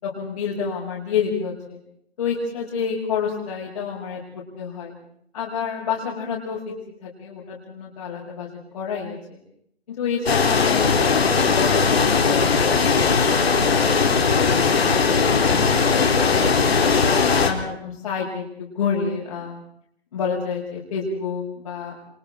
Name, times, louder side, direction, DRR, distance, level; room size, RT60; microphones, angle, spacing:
voice 1, 0.0-1.8 2.2-4.2 4.6-4.9 5.3-6.6 7.0-8.5 8.7-9.4 10.0-12.9 14.5-17.1 17.4-19.6 20.1-21.9, left 6 dB, 35° left, -7 dB, 6.6 m, -29 dB
sound 1, 10.3-17.5, left 5 dB, 70° left, 4.2 m, -19 dB
29.0 x 25.0 x 4.6 m, 0.69 s
hypercardioid pair, 170°, 32 cm